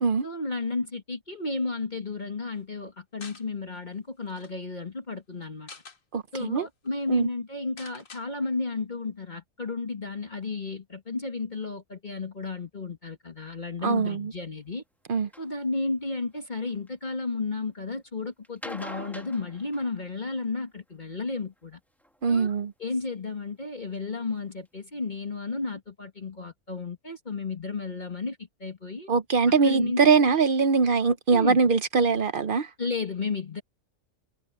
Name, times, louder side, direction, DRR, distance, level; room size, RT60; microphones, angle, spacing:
voice 1, 0.2-5.7 6.3-14.8 15.4-21.8 22.3-22.5 22.8-29.1 29.6-30.0 31.3-31.6 32.8-33.6, left 3 dB, 35° left, 1.9 m, -33 dB
sound 1, 3.2-3.4 3.9-4.0 4.3-4.5 5.4-6.0 6.5-6.6 6.9-7.0 7.8-8.2, left 4 dB, 90° left, 2.5 m, -46 dB
voice 2, 6.1-6.7 7.1-7.3 13.8-14.3 15.1-15.3 22.2-22.7 29.1-32.7, right 5 dB, 50° right, 0.7 m, -22 dB
sound 2, 15.3-15.5 16.2-16.9 18.4-20.4 22.0-22.6 23.3-23.4 23.9-24.0 24.4-24.5 24.6-24.7, equal, ahead, 1.2 m, -44 dB
omnidirectional pair, 1.3 m